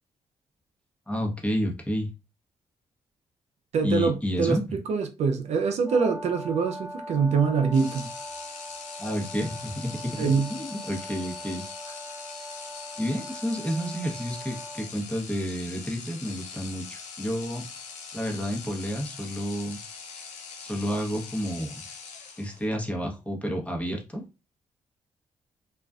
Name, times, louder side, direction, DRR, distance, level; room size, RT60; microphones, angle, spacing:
voice 1, 1.1-2.1 3.8-4.6 9.0-11.6 13.0-17.6 18.1-19.8 20.6-21.8 22.4-24.2, equal, 10° left, 0.9 m, -30 dB
voice 2, 3.7-8.1 10.2-10.5, right 5 dB, 65° right, 0.5 m, -24 dB
Brass instrument, 5.8-14.9, equal, 25° right, 0.7 m, -41 dB
sound 1, 7.7-22.8, left 5 dB, 80° left, 0.5 m, -42 dB
2.4 x 2.1 x 2.4 m
supercardioid pair, 55°, 12 cm